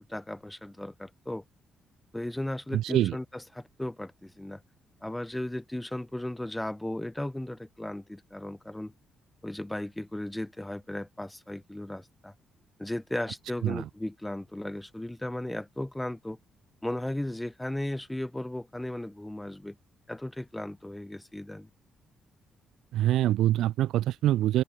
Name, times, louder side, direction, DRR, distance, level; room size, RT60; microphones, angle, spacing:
voice 1, 0.0-1.4 2.1-4.6 5.0-8.9 9.4-12.3 12.8-16.4 16.8-19.8 20.1-21.7, left 1 dB, 10° left, 0.4 m, -36 dB
voice 2, 2.7-3.2 13.6-13.9 22.9-24.6, right 13 dB, 85° right, 0.3 m, -25 dB
open air
cardioid pair, 90°, 0 cm